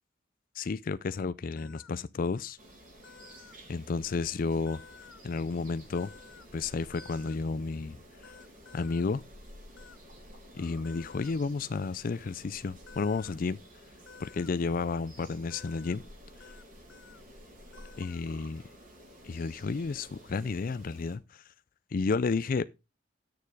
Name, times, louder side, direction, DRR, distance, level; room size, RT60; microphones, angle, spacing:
voice 1, 0.5-2.6 3.7-4.8 5.2-6.1 6.5-8.0 8.2-8.3 8.7-9.2 10.5-13.6 14.2-16.0 18.0-18.6 19.2-21.4 21.9-22.7, left 4 dB, 45° left, 0.4 m, -32 dB
sound 1, 1.6-1.9 3.0-3.6 4.7-5.2 5.9-6.5 6.9-7.4 8.2-9.0 9.8-10.0 10.8-11.3 12.9-13.3 14.1-14.5 15.5-16.0 16.4-16.6 16.9-17.2 17.7-18.2, left 6 dB, 80° left, 0.7 m, -52 dB
sound 2, 2.6-21.2, equal, 45° right, 3.7 m, -52 dB
9.5 x 6.8 x 4.8 m
head